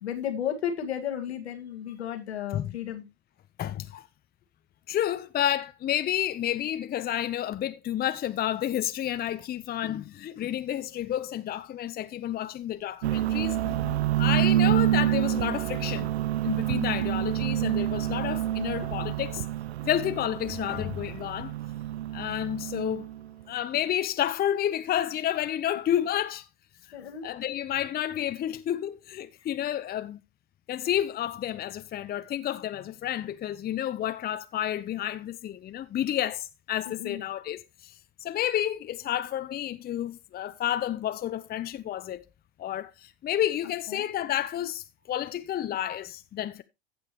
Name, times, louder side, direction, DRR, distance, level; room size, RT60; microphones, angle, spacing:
voice 1, 0.0-3.0 13.6-14.0 19.8-20.2 26.9-27.3 36.9-37.2 43.9-44.1, left 9 dB, 80° left, 1.9 m, -34 dB
voice 2, 3.6-4.0 4.9-13.6 14.2-16.1 16.4-19.5 19.9-21.5 22.1-23.1 23.5-26.4 27.2-30.2 30.7-37.9 38.2-42.2 42.6-46.6, left 11 dB, 30° left, 0.8 m, -30 dB
sound 1, 13.0-23.3, right 12 dB, 80° right, 0.5 m, -28 dB
15.5 x 6.1 x 3.0 m
hypercardioid pair, 85°, 32 cm